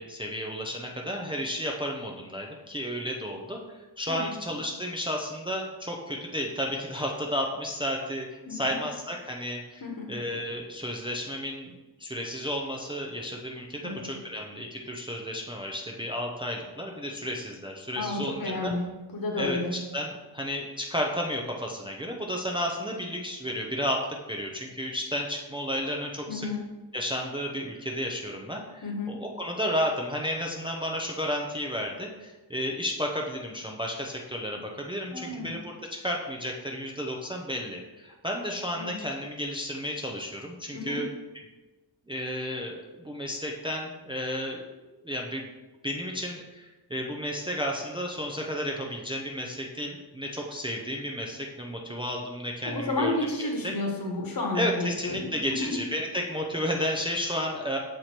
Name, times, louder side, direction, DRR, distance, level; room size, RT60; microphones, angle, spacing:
voice 1, 0.0-3.6 4.0-9.8 10.1-11.7 12.0-18.7 19.4-26.5 26.9-35.7 36.0-41.1 42.1-44.6 45.0-45.5 45.8-53.7 54.5-57.8, equal, 10° right, 0 dB, 0.5 m, -32 dB
voice 2, 8.5-8.8 9.8-10.1 13.8-14.1 17.9-19.8 26.3-26.6 28.8-29.2 35.1-35.5 38.8-38.9 40.7-41.0 52.6-55.8, left 2 dB, 55° left, 2 dB, 1.3 m, -31 dB
6.5 x 4.5 x 4.3 m, 1.2 s
wide cardioid pair, 180°, 42 cm